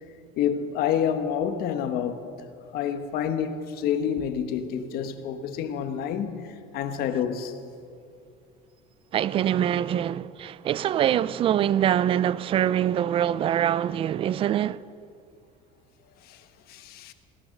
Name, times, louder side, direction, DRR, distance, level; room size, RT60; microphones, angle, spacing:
voice 1, 0.4-2.3 2.7-7.5 16.3-16.4 16.7-17.1, left 8 dB, 55° left, 1.2 m, -28 dB
voice 2, 9.1-14.8, right 10 dB, 30° right, 0.3 m, -24 dB
17.5 x 11.5 x 6.5 m
cardioid pair, 140°, 18 cm